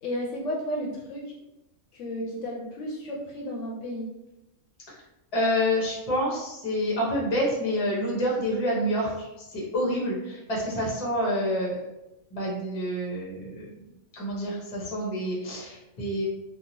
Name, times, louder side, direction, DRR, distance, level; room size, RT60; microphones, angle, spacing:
voice 1, 0.0-1.4 1.9-4.1, equal, 70° left, -2 dB, 0.9 m, -33 dB
voice 2, 5.3-11.8 12.3-13.7 14.1-16.2, equal, 35° left, -4 dB, 0.7 m, -28 dB
2.9 x 2.3 x 2.6 m, 0.93 s
omnidirectional pair, 1.3 m